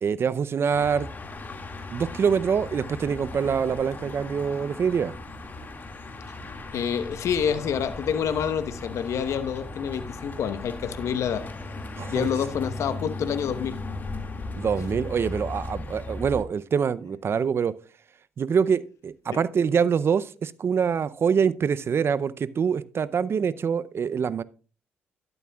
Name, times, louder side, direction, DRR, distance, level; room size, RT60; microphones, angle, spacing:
voice 1, 0.0-1.1 1.9-5.1 12.0-12.3 14.6-17.8 18.4-24.4, right 6 dB, 50° right, 0.6 m, -25 dB
sound 1, 0.7-16.4, left 2 dB, 35° left, 2.1 m, -37 dB
voice 2, 6.7-11.4 12.1-13.8 14.8-14.9, left 8 dB, 65° left, 1.0 m, -27 dB
12.0 x 11.0 x 2.3 m
hypercardioid pair, 55°, 5 cm